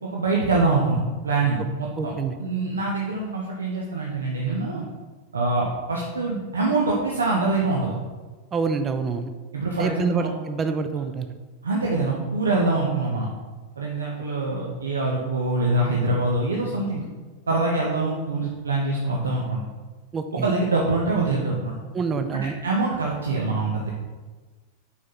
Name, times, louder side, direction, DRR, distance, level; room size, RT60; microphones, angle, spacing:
voice 1, 0.0-2.1 2.4-4.9 5.3-7.9 9.5-10.3 11.6-13.3 13.8-17.0 17.5-19.6 20.4-21.8 22.6-23.9, right 3 dB, 70° right, -2 dB, 0.7 m, -24 dB
voice 2, 2.0-2.3 8.5-9.3 9.8-11.3 20.1-20.5 21.9-22.5, right 4 dB, 25° right, 8 dB, 0.4 m, -26 dB
5.2 x 5.0 x 4.0 m, 1.3 s
figure-of-eight pair, 90°, 0 cm